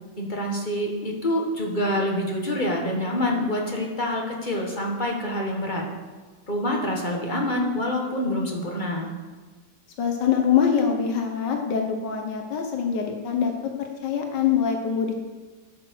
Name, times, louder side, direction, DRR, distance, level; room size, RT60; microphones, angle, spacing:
voice 1, 0.2-5.8 6.5-9.1, left 1 dB, 30° left, -1 dB, 1.5 m, -26 dB
voice 2, 10.0-13.5 13.8-15.1, left 7 dB, 80° left, 3 dB, 1.6 m, -24 dB
11.5 x 5.9 x 6.2 m, 1.3 s
omnidirectional pair, 1.9 m